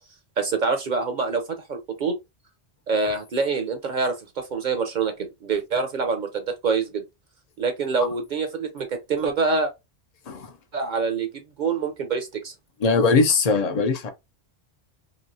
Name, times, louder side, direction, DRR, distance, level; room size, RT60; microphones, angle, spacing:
voice 1, 0.4-2.1 2.9-5.1 5.4-7.0 7.6-9.7 10.7-12.5, right 4 dB, 55° right, 0.6 m, -25 dB
voice 2, 12.8-14.1, left 4 dB, 50° left, 0.5 m, -20 dB
3.0 x 2.6 x 2.6 m
omnidirectional pair, 1.1 m